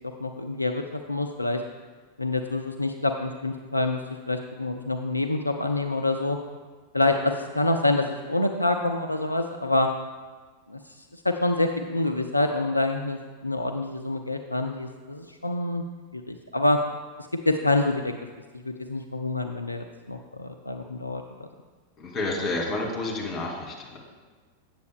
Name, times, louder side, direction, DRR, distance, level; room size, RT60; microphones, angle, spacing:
voice 1, 0.2-1.6 2.2-4.0 4.3-6.4 6.9-9.9 10.7-10.8 11.1-15.8 16.1-16.8 17.2-18.1 18.6-21.5, left 2 dB, 85° left, 5 dB, 0.4 m, -26 dB
voice 2, 22.0-24.0, left 2 dB, 30° left, 0 dB, 1.9 m, -30 dB
8.1 x 7.4 x 3.5 m, 1.4 s
figure-of-eight pair, 90°, 0 cm